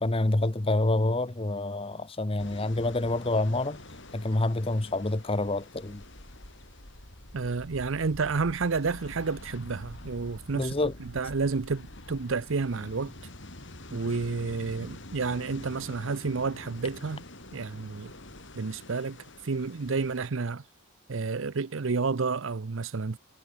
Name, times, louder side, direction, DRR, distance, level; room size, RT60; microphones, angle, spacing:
voice 1, 0.0-3.8 4.1-6.0 10.5-10.9, left 2 dB, 25° left, 0.9 m, -27 dB
sound 1, 2.4-20.3, left 1 dB, 55° left, 5.3 m, -46 dB
voice 2, 7.3-13.1 13.9-17.2 17.5-18.1 18.5-20.6 21.1-23.2, right 4 dB, 60° right, 0.6 m, -30 dB
head